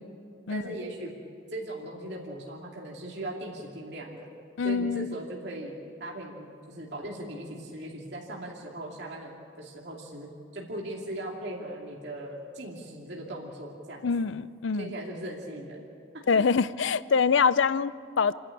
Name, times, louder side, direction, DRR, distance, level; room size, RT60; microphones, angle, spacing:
voice 1, 0.5-1.2 1.5-4.3 4.6-5.7 6.0-9.3 9.6-14.1 14.8-15.9 16.3-16.5, right 1 dB, 55° right, -2 dB, 2.7 m, -39 dB
voice 2, 4.6-5.2 14.0-14.9 16.3-18.3, left 5 dB, 70° left, 16 dB, 0.5 m, -25 dB
29.5 x 11.5 x 8.6 m, 2.3 s
head